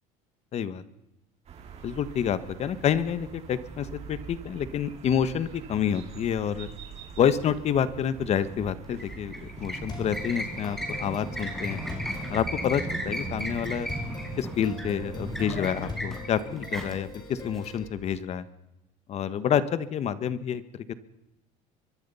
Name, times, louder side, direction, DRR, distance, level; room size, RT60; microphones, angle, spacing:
voice 1, 0.5-0.8 1.8-6.7 7.2-11.8 12.3-13.9 14.4-18.4 19.1-20.9, left 8 dB, 45° left, 14 dB, 1.5 m, -28 dB
sound 1, 1.4-16.0, right 6 dB, 45° right, 5.6 m, -43 dB
sound 2, 8.8-18.2, equal, ahead, 4.9 m, -36 dB
sound 3, 9.9-17.9, left 4 dB, 30° left, 6.0 m, -42 dB
24.5 x 22.0 x 5.7 m, 0.91 s
cardioid pair, 115°, 15 cm